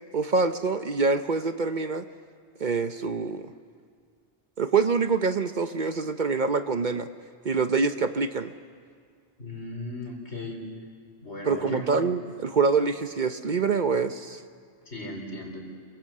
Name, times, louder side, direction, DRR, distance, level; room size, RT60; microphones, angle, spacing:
voice 1, 0.1-2.0 2.6-3.5 4.6-7.1 7.4-8.5 11.4-14.4, right 4 dB, 45° right, 9 dB, 0.9 m, -25 dB
voice 2, 9.4-10.6 11.2-11.9 14.9-15.6, left 2 dB, 75° left, 2 dB, 4.4 m, -36 dB
27.5 x 24.0 x 7.4 m, 2.1 s
omnidirectional pair, 1.1 m